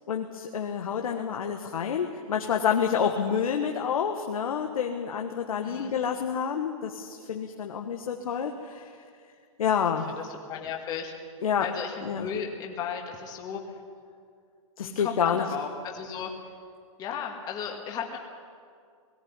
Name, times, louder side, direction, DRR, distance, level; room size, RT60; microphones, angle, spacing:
voice 1, 0.1-8.9 9.6-10.1 11.4-11.7 12.0-12.3 14.8-15.4, left 7 dB, 80° left, 3 dB, 1.5 m, -28 dB
voice 2, 10.2-11.1 11.6-13.6 14.8-16.3 17.0-18.2, left 7 dB, 20° left, 1 dB, 1.8 m, -35 dB
18.5 x 14.5 x 9.6 m, 2.2 s
hypercardioid pair, 155°, 18 cm